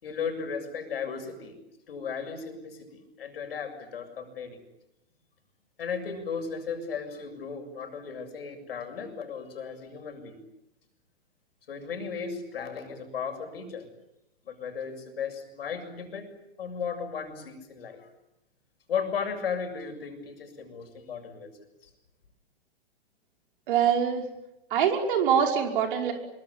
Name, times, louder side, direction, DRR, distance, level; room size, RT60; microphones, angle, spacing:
voice 1, 0.0-1.6 1.9-4.6 5.8-10.4 11.7-13.9 14.4-16.3 16.6-18.1 18.9-21.6, left 6 dB, 65° left, 6 dB, 7.1 m, -35 dB
voice 2, 23.7-24.2 24.7-26.1, right 8 dB, 55° right, 3 dB, 5.4 m, -24 dB
26.0 x 23.5 x 9.7 m, 0.87 s
figure-of-eight pair, 110°, 31 cm